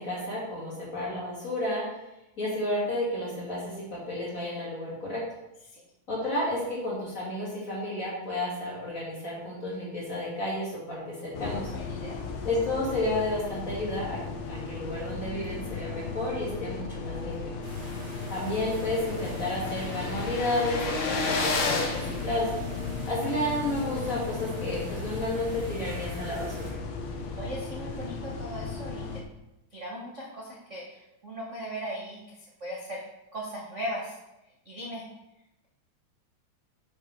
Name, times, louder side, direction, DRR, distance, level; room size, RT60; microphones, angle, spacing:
voice 1, 0.0-1.8 2.4-5.2 6.1-11.7 12.4-14.2 14.5-17.4 18.3-22.5 23.1-26.8, left 1 dB, 25° left, -6 dB, 3.2 m, -31 dB
sound 1, 11.3-29.2, left 4 dB, 70° left, 1.7 m, -36 dB
voice 2, 11.7-12.2 27.4-29.2 29.7-33.0 33.3-34.2 34.6-35.1, equal, 80° right, -3 dB, 0.6 m, -38 dB
sound 2, 17.5-17.6 17.9-18.0 18.2-23.1, left 3 dB, 85° left, 3.0 m, -32 dB
sound 3, 17.6-26.7, right 2 dB, 25° right, 2.2 m, -46 dB
9.7 x 6.7 x 3.7 m, 0.93 s
omnidirectional pair, 3.6 m